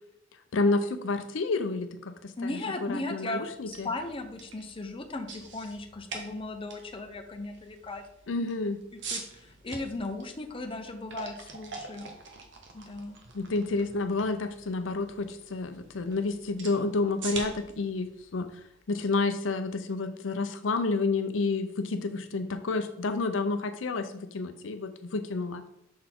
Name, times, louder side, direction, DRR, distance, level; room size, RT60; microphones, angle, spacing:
voice 1, 0.5-2.6 2.9-3.9 8.3-8.8 13.3-18.5 18.9-25.6, left 3 dB, 75° left, 8 dB, 0.6 m, -30 dB
voice 2, 2.4-8.0 8.9-12.1 12.7-13.2, left 2 dB, 30° left, 4 dB, 0.7 m, -37 dB
sound 1, 3.5-19.4, right 4 dB, 65° right, 1.1 m, -45 dB
6.3 x 4.1 x 4.4 m, 0.81 s
head